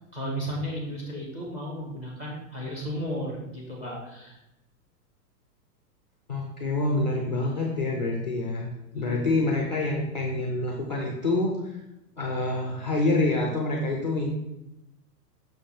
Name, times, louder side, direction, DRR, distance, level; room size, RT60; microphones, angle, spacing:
voice 1, 0.1-4.4 8.9-9.2, equal, 15° right, -3 dB, 1.0 m, -34 dB
voice 2, 6.3-11.8 12.2-14.3, left 2 dB, 30° left, 0 dB, 0.4 m, -27 dB
6.1 x 3.4 x 5.7 m, 0.90 s
supercardioid pair, 180°, 48 cm